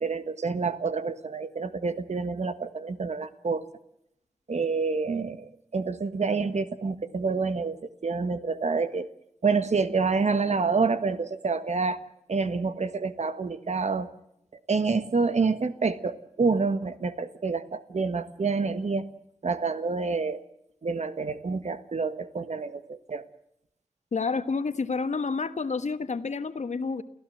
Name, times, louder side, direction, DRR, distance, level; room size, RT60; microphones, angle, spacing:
voice 1, 0.0-3.6 4.5-7.8 8.0-9.1 9.4-12.0 12.3-14.1 14.7-19.1 19.4-20.4 20.8-23.2, right 4 dB, 75° right, 11 dB, 1.5 m, -28 dB
voice 2, 24.1-27.0, left 4 dB, 85° left, 11 dB, 1.3 m, -29 dB
29.5 x 15.5 x 7.8 m, 0.77 s
wide cardioid pair, 70°, 12 cm